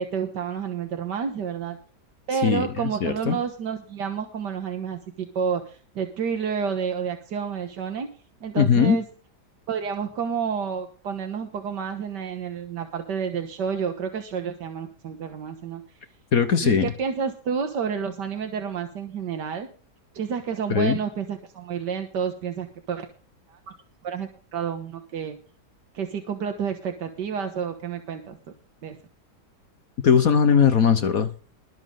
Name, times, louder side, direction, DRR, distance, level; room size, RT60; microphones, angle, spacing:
voice 1, 0.0-1.8 2.3-8.1 8.4-9.0 9.7-15.8 16.6-19.7 20.1-23.1 23.5-23.6 24.0-25.4 25.9-28.4 28.8-29.0, right 6 dB, 85° right, 1.9 m, -30 dB
voice 2, 2.4-3.4 8.6-9.0 16.3-16.9 20.7-21.0 30.0-31.3, left 7 dB, 60° left, 1.4 m, -20 dB
21.5 x 7.3 x 3.8 m
omnidirectional pair, 1.8 m